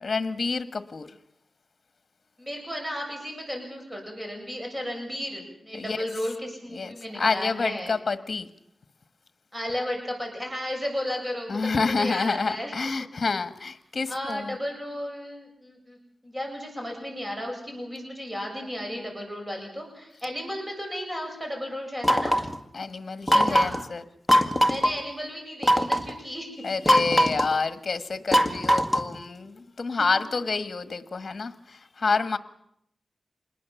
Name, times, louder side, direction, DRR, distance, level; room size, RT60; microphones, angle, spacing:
voice 1, 0.0-1.1 5.8-6.0 6.7-8.5 11.5-14.6 22.7-24.0 26.6-32.4, left 4 dB, 55° left, 11 dB, 1.6 m, -28 dB
voice 2, 2.4-7.9 9.5-12.7 14.1-16.0 16.2-22.3 23.3-23.7 24.6-26.5 30.1-30.2, equal, 15° right, 2 dB, 7.6 m, -34 dB
Single bowling pin knock, 22.0-22.6 23.3-23.8 24.3-24.9 25.6-26.1 26.9-27.5 28.3-29.2, equal, ahead, 2.0 m, -21 dB
26.5 x 21.0 x 7.2 m, 0.75 s
cardioid pair, 70°, 0 cm